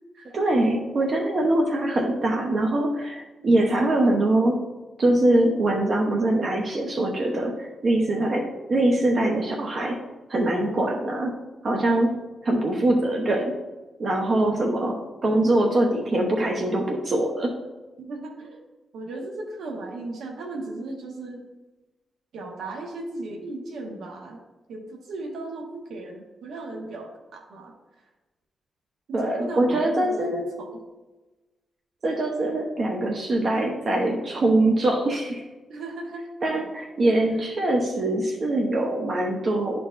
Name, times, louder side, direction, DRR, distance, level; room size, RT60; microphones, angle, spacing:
voice 1, 0.2-4.6 5.0-10.0 10.3-11.3 11.6-12.2 12.4-13.6 14.0-17.6 29.1-30.5 32.0-35.4 36.4-39.8, right 1 dB, 50° right, 2 dB, 0.9 m, -23 dB
voice 2, 18.0-18.6 18.9-21.4 22.3-24.4 24.7-27.7 29.1-30.8 35.7-36.3, right 2 dB, 85° right, 1 dB, 1.1 m, -36 dB
11.5 x 4.6 x 2.6 m, 1.2 s
cardioid pair, 85°, 0 cm